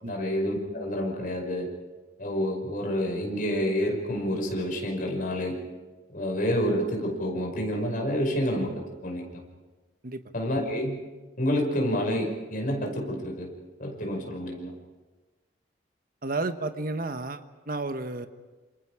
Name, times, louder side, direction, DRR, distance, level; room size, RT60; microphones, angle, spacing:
voice 1, 0.0-1.7 2.2-5.6 6.1-9.4 10.3-11.0 11.4-13.5 13.8-14.7, equal, 50° left, 1 dB, 5.5 m, -28 dB
voice 2, 16.2-18.3, right 2 dB, 55° right, 9 dB, 1.2 m, -32 dB
27.5 x 26.5 x 4.9 m, 1.2 s
head